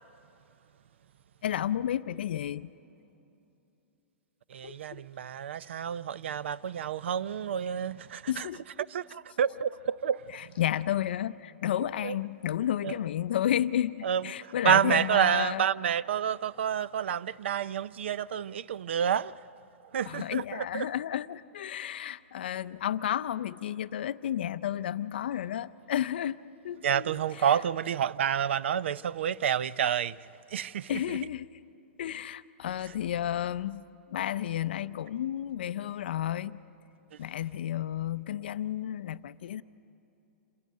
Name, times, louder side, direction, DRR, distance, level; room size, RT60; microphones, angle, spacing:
voice 1, 1.4-2.7 4.6-5.0 8.3-8.6 10.3-15.6 20.1-26.4 26.6-27.6 30.9-31.5 32.0-36.6 37.2-39.6, left 11 dB, 50° left, 0.5 m, -32 dB
voice 2, 4.5-8.5 8.9-10.4 12.0-12.1 12.8-12.9 14.0-19.3 19.9-20.9 26.8-30.2 30.5-31.0, right 9 dB, 60° right, 0.4 m, -29 dB
26.5 x 15.5 x 9.4 m
hypercardioid pair, 180°, 7 cm